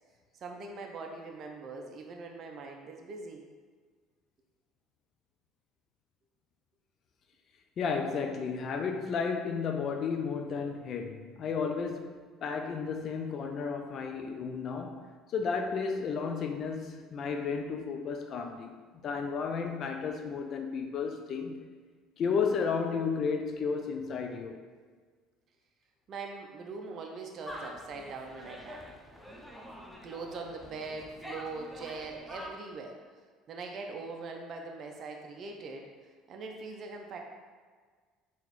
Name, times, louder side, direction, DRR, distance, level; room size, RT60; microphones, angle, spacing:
voice 1, 0.3-3.4 26.1-28.9 30.0-33.0 33.5-37.2, right 3 dB, 50° right, 0.5 m, -42 dB
voice 2, 7.8-18.7 19.0-21.7 22.2-24.6, left 5 dB, 50° left, 0.3 m, -33 dB
sound 1, 27.5-32.5, left 1 dB, ahead, 0.6 m, -46 dB
3.8 x 3.0 x 3.0 m
supercardioid pair, 80°, 0 cm